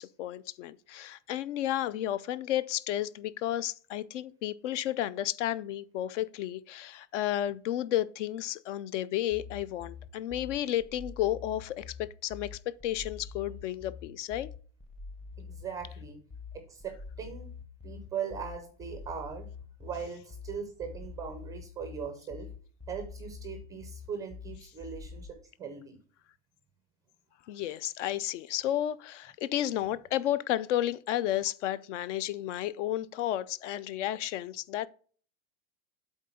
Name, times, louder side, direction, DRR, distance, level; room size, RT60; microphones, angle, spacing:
voice 1, 0.0-14.5 27.5-34.9, left 12 dB, 65° left, 0.5 m, -32 dB
sound 1, 9.3-25.3, left 5 dB, 15° left, 0.7 m, -45 dB
voice 2, 15.4-16.2 16.5-17.6 17.8-19.5 19.8-22.5 22.9-26.0, right 7 dB, 10° right, 0.4 m, -40 dB
8.1 x 3.8 x 5.6 m
supercardioid pair, 160°, 40 cm